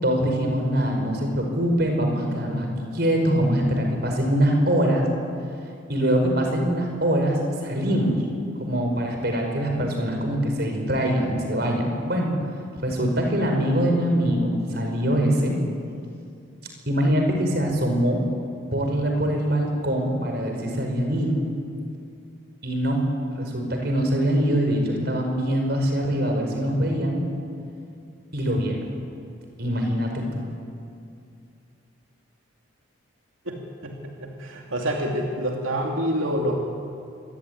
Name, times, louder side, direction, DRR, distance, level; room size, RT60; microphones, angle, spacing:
voice 1, 0.0-5.0 5.9-8.1 8.6-12.3 12.8-15.5 16.9-18.2 18.7-21.4 22.6-23.0 23.4-27.2 28.3-28.8 29.6-30.4, equal, 50° right, 2 dB, 5.3 m, -23 dB
voice 2, 33.5-33.9 34.2-36.7, equal, 85° right, 1 dB, 2.8 m, -27 dB
26.0 x 23.0 x 9.5 m, 2.5 s
head